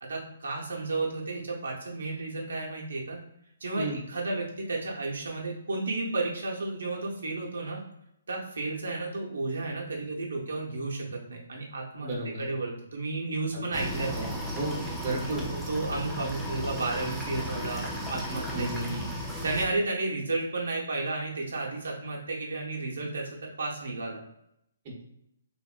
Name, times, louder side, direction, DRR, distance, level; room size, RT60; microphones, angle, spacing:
voice 1, 0.0-3.2 3.6-7.8 8.3-12.1 12.4-14.3 15.2-24.2, right 2 dB, 80° right, -2 dB, 0.6 m, -33 dB
voice 2, 12.0-12.4 14.1-14.3 14.5-15.4 18.5-19.1 24.9-25.0, right 2 dB, 35° right, -2 dB, 0.8 m, -33 dB
sound 1, 13.7-19.7, equal, 5° right, 0.4 m, -35 dB
2.9 x 2.1 x 2.4 m, 0.79 s
hypercardioid pair, 155°, 0 cm